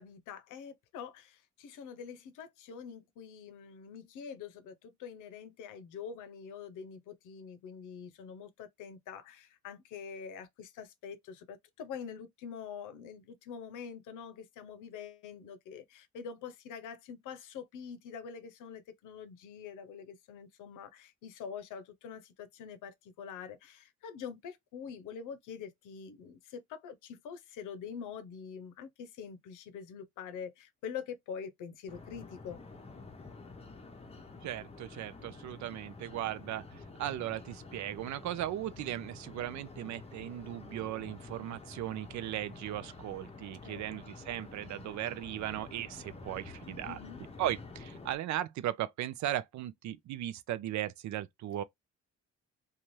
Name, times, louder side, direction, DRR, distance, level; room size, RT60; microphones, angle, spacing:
voice 1, 0.0-32.6 43.6-43.8 46.8-47.2, left 7 dB, 85° left, 0.7 m, -45 dB
sound 1, 31.9-48.2, left 3 dB, 20° left, 0.7 m, -49 dB
voice 2, 34.4-47.0 47.4-51.6, right 12 dB, 70° right, 0.5 m, -37 dB
2.7 x 2.3 x 3.1 m
cardioid pair, 90°, 30 cm